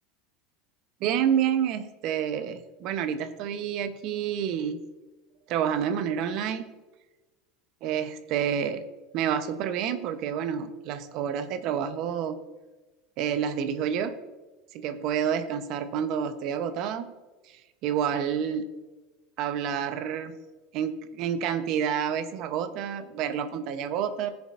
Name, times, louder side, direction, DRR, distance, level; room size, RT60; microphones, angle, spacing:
voice 1, 1.0-4.8 5.5-6.8 7.8-8.8 9.1-12.4 13.2-14.1 14.7-17.1 17.5-18.7 19.4-20.3 20.7-24.3, right 8 dB, 60° right, 10 dB, 0.8 m, -29 dB
16.0 x 7.0 x 2.5 m, 1.2 s
supercardioid pair, 105°, 0 cm